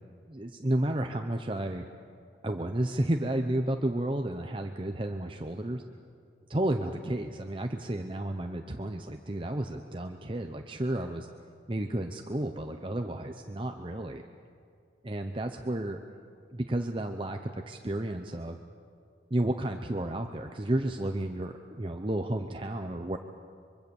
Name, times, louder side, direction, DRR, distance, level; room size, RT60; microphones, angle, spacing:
voice 1, 0.3-1.9 2.4-5.8 6.5-11.3 11.7-14.2 15.0-16.0 16.5-18.6 19.3-23.2, right 1 dB, 30° right, 5 dB, 0.8 m, -32 dB
24.5 x 23.5 x 7.1 m, 2.3 s
head